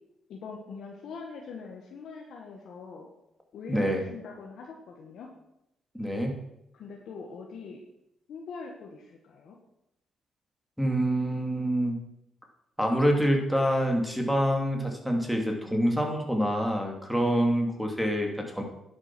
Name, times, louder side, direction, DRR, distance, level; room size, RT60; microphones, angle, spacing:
voice 1, 0.3-3.1 3.5-5.3 6.7-7.8 8.3-9.6, left 5 dB, 70° left, 0 dB, 1.7 m, -42 dB
voice 2, 3.7-4.1 5.9-6.4 10.8-12.0 12.8-18.6, equal, ahead, 1 dB, 2.7 m, -26 dB
10.5 x 7.4 x 6.2 m, 0.84 s
cardioid pair, 90°, 0 cm